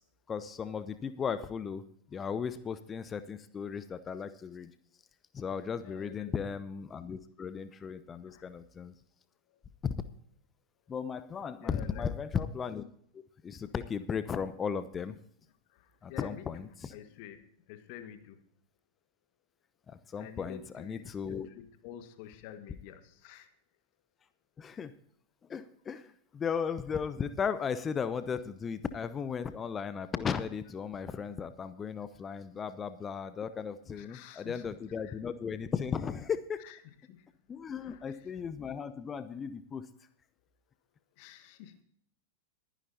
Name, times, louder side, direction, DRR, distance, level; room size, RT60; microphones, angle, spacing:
voice 1, 0.3-1.8 2.1-4.7 5.3-8.9 9.8-9.9 10.9-12.8 13.1-15.2 16.0-16.9 19.9-21.5 24.6-24.9 25.5-36.6 37.5-39.9, left 6 dB, 20° left, 13 dB, 0.7 m, -36 dB
voice 2, 5.7-6.3 8.2-8.4 11.6-12.1 15.7-18.4 20.2-23.5 33.8-34.7 35.0-35.2 36.6-37.3 37.8-38.3 41.2-41.8, left 10 dB, 45° left, 10 dB, 1.5 m, -49 dB
22.0 x 10.0 x 2.7 m, 0.65 s
figure-of-eight pair, 90°, 0 cm